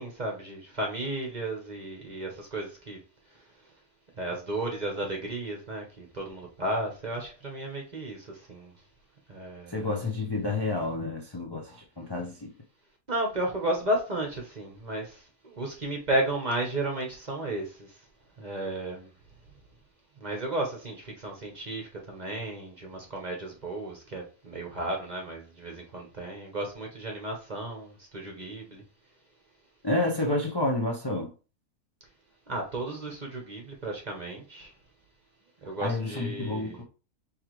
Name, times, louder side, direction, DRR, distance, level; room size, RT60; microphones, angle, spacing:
voice 1, 0.0-3.0 3.3-3.4 4.2-8.7 9.3-9.9 13.1-18.0 18.4-19.1 20.2-28.8 32.5-34.7 35.6-36.8, right 1 dB, 35° right, 0.9 m, -33 dB
voice 2, 9.7-12.5 29.8-31.3 35.8-36.8, left 2 dB, 25° left, 0.5 m, -29 dB
4.7 x 3.3 x 3.1 m
omnidirectional pair, 1.6 m